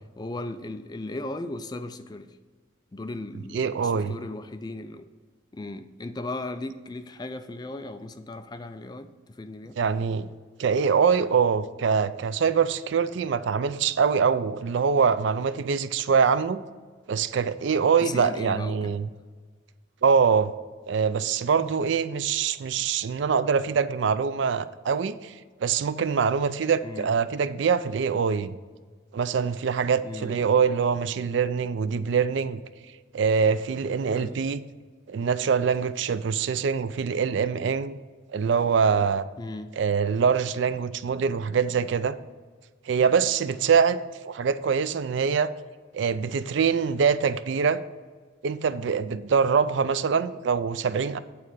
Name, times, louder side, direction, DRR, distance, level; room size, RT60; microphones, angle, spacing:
voice 1, 0.0-2.4 2.9-5.1 5.5-9.8 18.0-18.9 26.8-27.1 30.0-30.3 34.1-34.3 39.4-39.7, left 2 dB, 20° left, 10 dB, 0.3 m, -37 dB
voice 2, 3.5-4.1 9.8-10.3 10.6-16.6 17.1-19.1 20.0-20.5 20.9-25.3 25.6-28.5 29.1-32.6 33.1-34.6 35.1-38.0 38.3-39.2 39.7-42.2 42.9-44.0 44.2-45.5 45.9-47.8 48.4-51.2, right 6 dB, 65° right, 14 dB, 0.4 m, -24 dB
8.6 x 4.1 x 6.2 m, 1.5 s
head